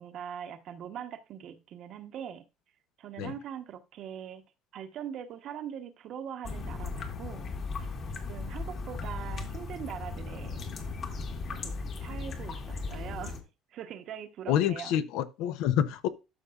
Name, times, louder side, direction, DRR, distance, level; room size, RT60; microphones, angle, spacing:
voice 1, 0.0-2.4 3.0-4.4 4.7-7.9 8.3-10.7 11.5-13.4 13.7-15.0, right 9 dB, 60° right, 1.0 m, -42 dB
sound 1, 6.4-13.4, left 4 dB, 45° left, 1.6 m, -37 dB
voice 2, 14.5-16.1, left 10 dB, 80° left, 0.8 m, -27 dB
12.5 x 5.4 x 2.5 m
cardioid pair, 110°, 0 cm